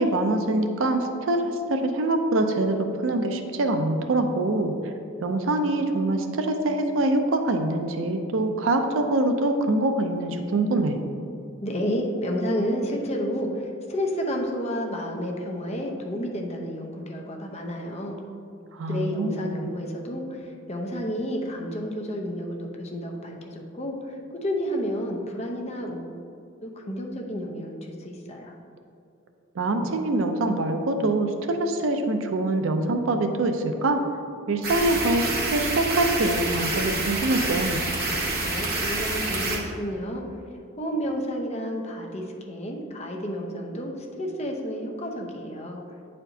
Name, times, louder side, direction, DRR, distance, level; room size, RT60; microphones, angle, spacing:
voice 1, 0.0-4.9 5.2-11.0 18.7-19.7 29.6-34.0 34.5-37.8, right 2 dB, 75° right, 6 dB, 0.5 m, -24 dB
voice 2, 11.6-18.2 18.9-20.4 20.7-24.0 24.4-26.1 26.6-28.5 38.4-40.2 40.8-45.8, equal, 35° left, 0 dB, 0.7 m, -31 dB
sound 1, 34.6-39.6, right 2 dB, 50° right, 1.1 m, -27 dB
8.8 x 4.3 x 2.7 m, 2.6 s
head